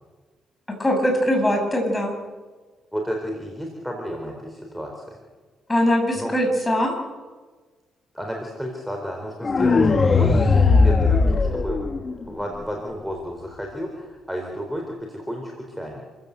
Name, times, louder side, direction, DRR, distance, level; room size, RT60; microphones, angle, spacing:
voice 1, 0.8-2.1 5.7-6.9, equal, 15° left, 2 dB, 7.7 m, -21 dB
voice 2, 2.9-5.2 6.1-6.3 8.1-11.8 12.3-16.0, equal, ahead, 1 dB, 4.0 m, -32 dB
sound 1, 9.4-12.4, left 4 dB, 35° left, 1.9 m, -18 dB
28.5 x 15.5 x 8.2 m, 1.4 s
cardioid pair, 90°, 0 cm